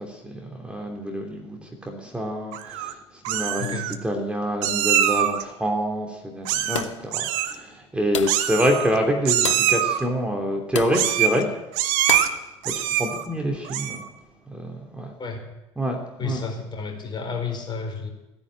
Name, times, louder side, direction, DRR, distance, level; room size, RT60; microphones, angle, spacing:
voice 1, 0.0-2.9 3.3-11.5 13.0-14.0 14.5-15.1 15.8-16.4, equal, 5° right, 1 dB, 2.9 m, -27 dB
Meow, 2.5-2.9 3.2-3.9 4.6-5.4 6.4-6.9 7.1-7.5 8.3-9.0 9.2-10.0 10.9-11.4 11.7-12.3 12.6-13.2 13.6-14.1, right 11 dB, 60° right, 1.2 m, -23 dB
sound 1, 6.7-7.1 8.1-8.5 9.4-9.7 10.7-11.0 12.1-12.4, left 7 dB, 80° left, 0.9 m, -30 dB
voice 2, 16.2-18.1, left 5 dB, 30° left, 3 dB, 4.7 m, -31 dB
16.0 x 10.0 x 8.9 m, 0.98 s
figure-of-eight pair, 65°, 15 cm